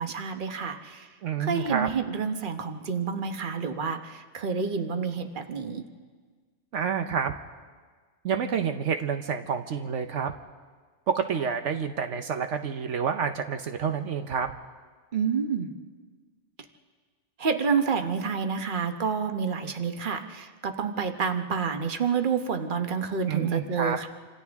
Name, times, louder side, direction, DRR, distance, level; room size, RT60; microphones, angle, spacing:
voice 1, 0.0-1.1 1.4-5.8 15.1-15.7 17.4-24.1, right 6 dB, 45° right, 6 dB, 1.2 m, -29 dB
voice 2, 1.2-1.9 6.7-7.3 8.2-10.3 11.1-14.5 23.3-24.0, right 7 dB, 75° right, 7 dB, 1.1 m, -28 dB
28.0 x 26.5 x 3.6 m, 1.5 s
omnidirectional pair, 1.3 m